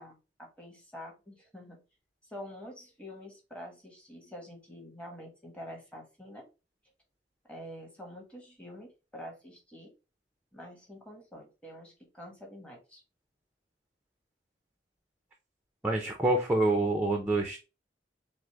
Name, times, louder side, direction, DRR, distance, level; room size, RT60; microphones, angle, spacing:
voice 1, 0.0-1.8 2.2-6.4 7.5-9.9 10.5-13.0, equal, 5° left, 0 dB, 1.2 m, -47 dB
voice 2, 15.8-17.6, right 2 dB, 10° right, 3 dB, 0.6 m, -27 dB
6.1 x 2.1 x 3.0 m, 0.29 s
head